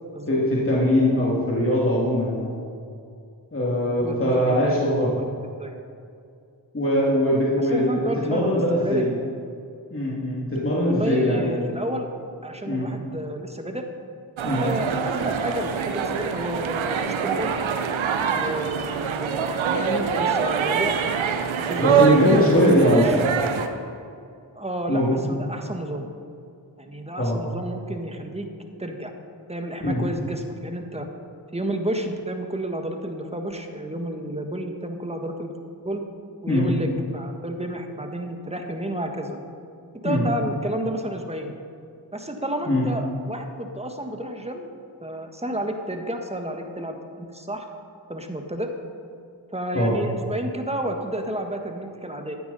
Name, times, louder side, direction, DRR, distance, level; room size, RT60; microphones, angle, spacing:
voice 1, 0.3-2.6 3.5-5.1 6.7-9.1 9.9-11.5 12.7-12.9 14.4-14.6 21.8-23.0 24.9-25.3 27.2-27.4 29.8-30.0 36.5-36.7 40.0-40.2 42.7-42.8 49.7-50.0, equal, 30° left, -5 dB, 2.6 m, -21 dB
voice 2, 4.0-5.7 7.7-9.1 10.9-12.1 12.4-13.8 14.5-17.5 18.3-20.9 21.6-22.1 22.3-23.2 24.5-26.1 26.8-28.5 28.8-29.1 29.5-31.1 31.5-35.5 35.8-36.0 36.4-39.4 40.0-41.5 42.1-44.7 45.0-47.6 48.1-48.7 49.5-52.4, right 1 dB, 15° right, 4 dB, 1.5 m, -31 dB
sound 1, 14.4-23.7, right 6 dB, 85° right, 0.9 m, -24 dB
15.0 x 9.4 x 4.2 m, 2.4 s
cardioid pair, 50°, 46 cm